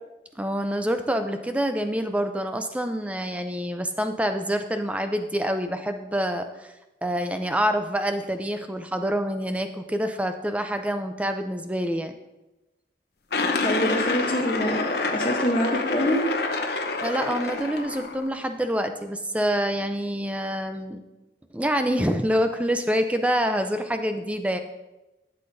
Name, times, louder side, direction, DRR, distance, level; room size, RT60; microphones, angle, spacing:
voice 1, 0.4-6.7 7.0-12.1 17.0-21.0 21.5-24.6, equal, 10° right, 7 dB, 0.4 m, -26 dB
sound 1, 13.3-18.3, left 3 dB, 65° left, 0.8 m, -27 dB
voice 2, 13.6-16.2, equal, 30° left, -4 dB, 0.9 m, -25 dB
12.0 x 7.7 x 2.7 m, 1.0 s
head